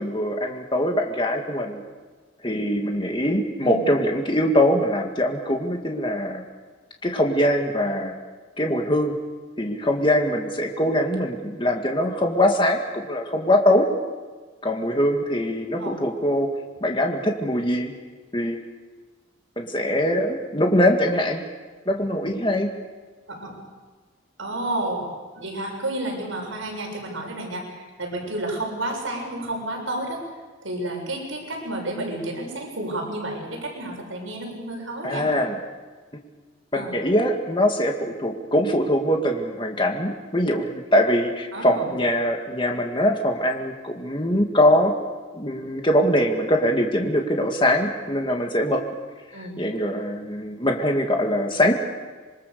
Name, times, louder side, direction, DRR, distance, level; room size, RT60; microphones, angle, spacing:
voice 1, 0.0-1.8 2.4-6.4 7.0-8.1 8.6-9.1 9.6-13.9 14.6-16.5 16.8-17.9 18.3-18.6 19.6-21.4 21.9-22.7 35.0-35.6 36.7-44.9 45.3-48.8 49.6-51.8, equal, 25° left, 2 dB, 2.1 m, -22 dB
voice 2, 24.4-25.0 25.4-30.2 30.6-35.3 36.7-36.9 41.5-41.9 49.3-49.6, right 1 dB, 75° right, 1 dB, 7.0 m, -31 dB
26.5 x 23.5 x 6.9 m, 1.4 s
head